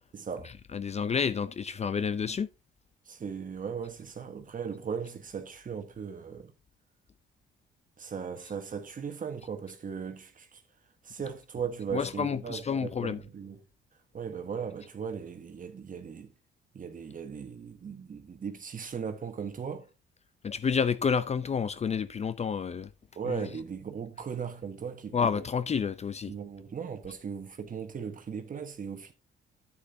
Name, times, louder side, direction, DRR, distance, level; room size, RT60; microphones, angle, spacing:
voice 1, 0.1-0.5 3.1-6.5 8.0-10.6 11.0-13.6 14.1-16.3 16.7-19.9 23.1-25.2 26.3-29.1, right 6 dB, 45° right, 1.3 m, -38 dB
voice 2, 0.7-2.5 11.9-13.2 20.4-22.9 23.3-23.5 25.1-26.3, left 6 dB, 35° left, 0.5 m, -29 dB
10.0 x 8.8 x 2.7 m
cardioid pair, 90°, 20 cm